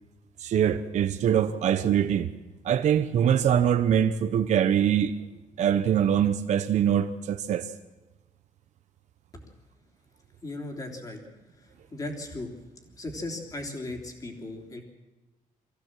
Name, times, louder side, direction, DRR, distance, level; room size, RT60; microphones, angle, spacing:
voice 1, 0.4-2.3 2.6-5.1 5.6-7.7, right 9 dB, 55° right, 0.8 m, -23 dB
voice 2, 10.4-11.2 11.6-12.5 13.0-14.8, left 2 dB, 25° left, 3.4 m, -37 dB
24.0 x 15.5 x 7.6 m
cardioid pair, 160°, 14 cm